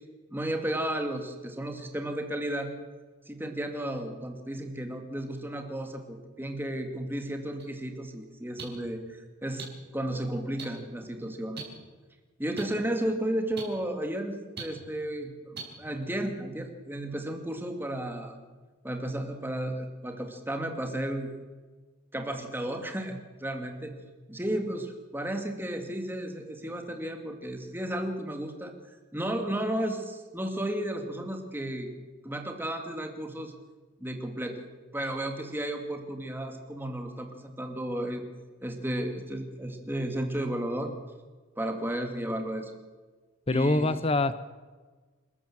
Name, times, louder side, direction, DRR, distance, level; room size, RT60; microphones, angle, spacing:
voice 1, 0.3-2.7 3.3-9.7 9.9-11.6 12.4-18.4 18.8-21.3 22.1-23.9 24.3-28.8 29.1-31.9 32.2-33.5 34.0-34.6 34.9-38.2 38.6-40.9 41.6-42.7 43.5-44.0, right 1 dB, 10° right, 4 dB, 2.4 m, -33 dB
sound 1, 7.6-7.7 8.6-8.7 9.6-9.7 10.6-10.7 11.6-11.7 12.6-12.7 13.6-13.7 14.6-14.7 15.5-15.6, right 5 dB, 50° right, 5.2 m, -37 dB
voice 2, 43.5-44.3, left 2 dB, 30° left, 14 dB, 0.6 m, -24 dB
28.5 x 13.5 x 7.5 m, 1.4 s
head